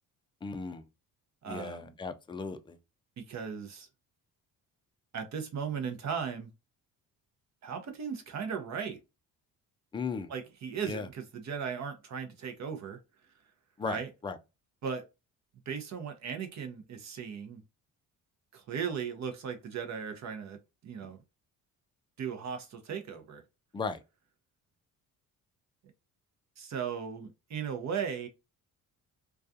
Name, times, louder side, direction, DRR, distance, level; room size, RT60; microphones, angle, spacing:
voice 1, 0.4-0.8 1.5-2.8 9.9-10.3 10.8-11.1 13.8-14.0 14.2-14.4 23.7-24.0, left 5 dB, 15° left, 0.3 m, -36 dB
voice 2, 1.4-1.9 3.3-3.9 5.1-6.5 7.6-9.0 10.3-13.0 13.8-14.1 14.8-15.0 15.7-17.6 18.5-20.6 20.8-21.2 22.2-23.4 26.6-28.3, right 7 dB, 50° right, 0.7 m, -37 dB
2.3 x 2.3 x 2.6 m
cardioid pair, 80°, 35 cm